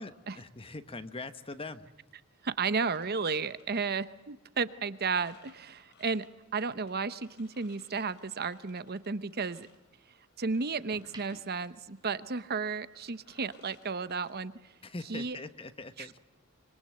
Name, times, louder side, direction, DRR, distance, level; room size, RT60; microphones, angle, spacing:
voice 1, 0.0-1.9 14.8-16.2, left 2 dB, 25° left, 11 dB, 1.2 m, -42 dB
voice 2, 2.4-6.3 6.5-9.7 10.4-14.5 15.1-15.4, right 4 dB, 45° right, 14 dB, 0.9 m, -33 dB
sound 1, 2.8-15.1, left 4 dB, 50° left, 4.2 m, -64 dB
sound 2, 7.5-8.4 8.8-10.2 10.7-12.8 13.1-13.4, right 3 dB, 20° right, 3.8 m, -57 dB
26.0 x 24.0 x 7.8 m, 1.1 s
head